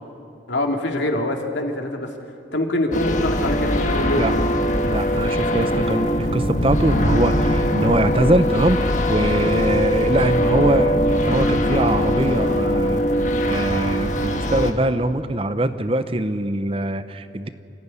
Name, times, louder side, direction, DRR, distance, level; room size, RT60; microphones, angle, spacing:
voice 1, 0.5-2.1 2.5-4.3, left 1 dB, 90° left, 3 dB, 2.7 m, -24 dB
sound 1, 2.9-14.7, equal, 45° left, 1.6 m, -21 dB
voice 2, 4.9-8.8 9.1-13.0 13.4-17.5, right 1 dB, 30° right, 11 dB, 0.8 m, -22 dB
27.0 x 15.0 x 9.9 m, 2.6 s
head